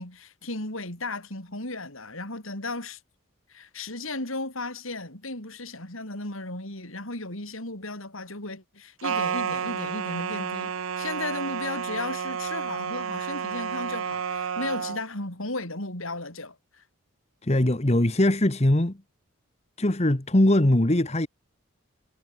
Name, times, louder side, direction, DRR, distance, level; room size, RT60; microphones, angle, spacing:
voice 1, 0.0-3.0 3.5-16.8, left 2 dB, 75° left, 6.5 m, -35 dB
sound 1, 9.0-15.0, right 6 dB, 75° right, 0.6 m, -31 dB
voice 2, 17.4-19.0 19.8-21.3, left 1 dB, 30° left, 1.3 m, -21 dB
head